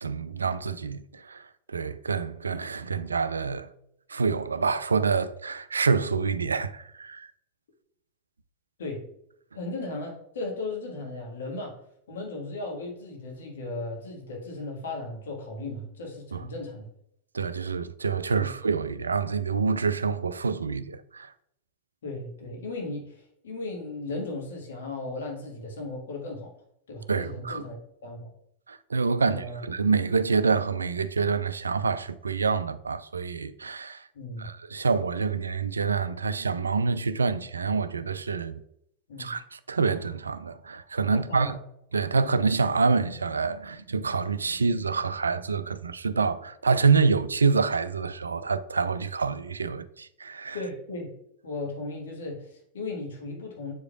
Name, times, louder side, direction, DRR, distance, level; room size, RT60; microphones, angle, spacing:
voice 1, 0.0-3.7 4.1-7.3 16.3-16.4 17.3-21.3 27.1-27.7 28.7-34.0 34.4-38.6 39.2-41.6 41.9-50.6, right 5 dB, 75° right, 0.3 m, -27 dB
voice 2, 9.5-11.7 12.1-16.9 18.4-18.5 22.0-26.5 26.9-28.3 29.2-29.6 34.1-34.5 39.1-39.3 41.1-41.5 50.5-51.2 51.4-53.7, left 2 dB, 60° left, 1.6 m, -36 dB
8.0 x 4.9 x 2.4 m
figure-of-eight pair, 90°, 0 cm